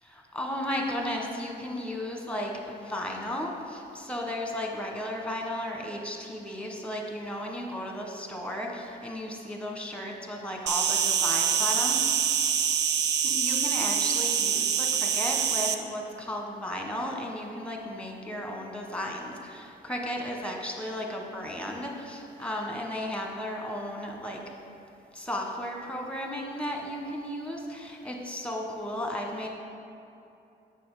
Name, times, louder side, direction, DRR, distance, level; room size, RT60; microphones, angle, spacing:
voice 1, 0.0-12.0 13.2-24.4 25.1-29.5, left 1 dB, 5° left, 1 dB, 1.3 m, -34 dB
Insect, 10.7-15.7, right 8 dB, 60° right, 0.6 m, -25 dB
7.0 x 6.8 x 4.9 m, 2.8 s
cardioid pair, 90°, 20 cm